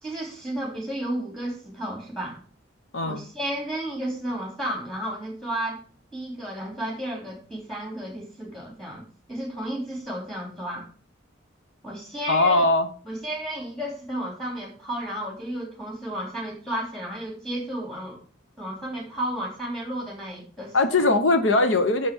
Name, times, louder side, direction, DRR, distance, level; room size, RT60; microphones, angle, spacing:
voice 1, 0.0-2.4 3.1-5.8 6.1-10.9 11.8-12.7 13.0-18.2 18.6-21.1, right 1 dB, 5° left, -1 dB, 3.1 m, -33 dB
voice 2, 12.3-12.9 20.7-22.1, left 2 dB, 80° left, 8 dB, 0.9 m, -20 dB
6.7 x 5.5 x 6.0 m, 0.41 s
head